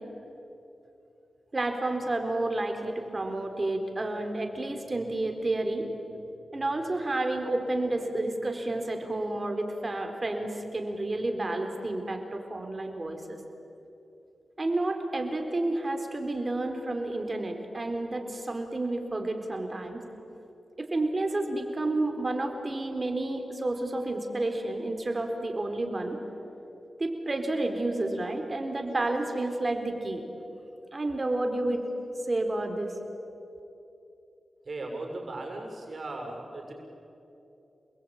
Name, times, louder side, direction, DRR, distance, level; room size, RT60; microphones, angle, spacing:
voice 1, 1.5-5.9 6.5-13.4 14.6-20.0 20.8-26.2 27.0-30.2 30.9-31.8 32.3-32.9, right 2 dB, 35° right, 5 dB, 4.0 m, -30 dB
voice 2, 34.6-36.7, right 2 dB, 50° right, 2 dB, 6.5 m, -37 dB
28.5 x 21.5 x 8.9 m, 2.9 s
cardioid pair, 55°, 0 cm